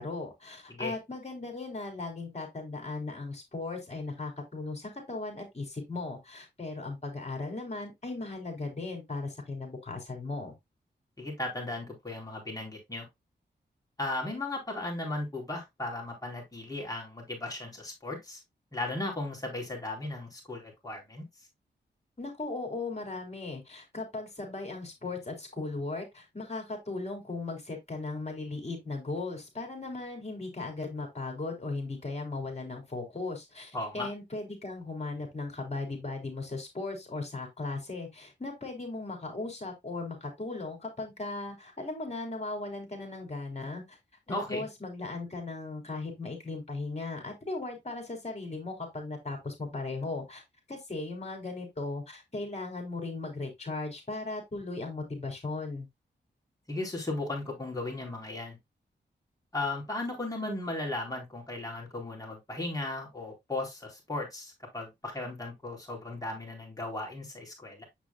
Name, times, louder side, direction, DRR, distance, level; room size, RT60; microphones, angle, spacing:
voice 1, 0.0-10.5 22.2-44.0 44.3-50.4 50.7-55.9, left 3 dB, 35° left, 3.8 m, -37 dB
voice 2, 11.2-13.1 14.0-18.4 18.7-21.3 33.7-34.1 44.3-44.6 56.7-58.6 59.5-67.8, left 2 dB, 20° left, 4.2 m, -36 dB
7.9 x 6.0 x 2.3 m
cardioid pair, 70°, 19 cm